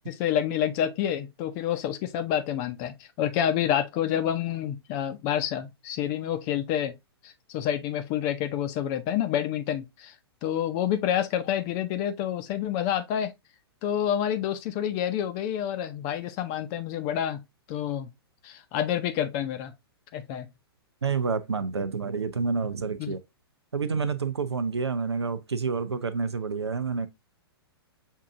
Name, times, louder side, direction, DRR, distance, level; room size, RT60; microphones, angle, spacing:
voice 1, 0.1-6.9 7.2-10.1 10.4-13.3 13.8-17.4 17.7-18.1 18.4-19.7 20.1-20.5 23.0-23.1, left 10 dB, 35° left, 0.7 m, -28 dB
voice 2, 21.0-23.2 23.7-27.1, right 5 dB, 85° right, 0.7 m, -28 dB
6.2 x 2.8 x 2.5 m
figure-of-eight pair, 115°, 13 cm